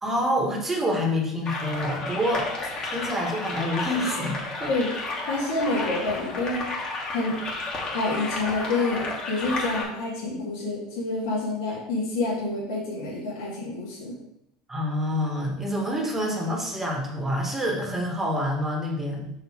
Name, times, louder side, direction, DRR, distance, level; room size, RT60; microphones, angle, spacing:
voice 1, 0.0-2.5 2.9-4.7 14.7-19.3, equal, 15° right, 0 dB, 2.0 m, -27 dB
sound 1, 1.4-9.8, left 2 dB, 35° left, 2.3 m, -32 dB
voice 2, 5.2-6.6 7.1-7.4 7.9-14.1, left 2 dB, 70° left, -6 dB, 2.3 m, -28 dB
5.4 x 5.0 x 4.7 m, 0.79 s
hypercardioid pair, 95°, 2 cm